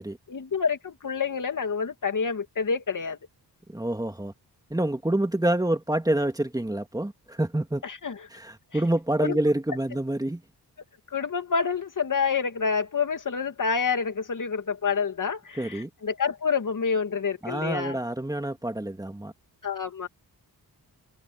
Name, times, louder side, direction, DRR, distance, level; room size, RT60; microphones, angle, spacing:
voice 1, 0.3-3.2 7.8-8.2 9.2-9.4 11.1-18.0 19.6-20.1, left 5 dB, 50° left, 2.7 m, -28 dB
voice 2, 3.7-4.3 4.7-7.8 8.3-10.4 15.6-15.9 17.4-19.3, right 1 dB, 10° right, 2.6 m, -27 dB
cardioid pair, 90°, 39 cm